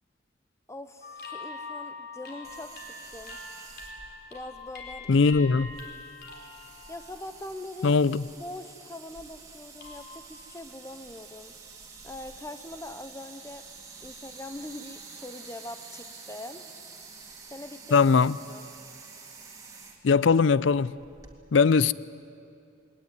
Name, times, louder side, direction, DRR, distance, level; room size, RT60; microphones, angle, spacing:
voice 1, 0.7-3.4 4.3-5.1 6.9-8.0 8.4-11.6 12.0-13.6 14.0-16.6 17.5-18.0 18.5-18.6, left 1 dB, 15° left, 0.8 m, -42 dB
sound 1, 1.0-7.9 8.3-8.7 9.8-10.0, left 3 dB, 55° left, 4.0 m, -43 dB
sound 2, 2.4-21.4, right 4 dB, 20° right, 2.2 m, -48 dB
voice 2, 5.1-5.7 7.8-8.2 17.9-18.4 20.0-20.9 21.5-21.9, left 5 dB, 80° left, 0.5 m, -20 dB
21.5 x 18.5 x 9.5 m
head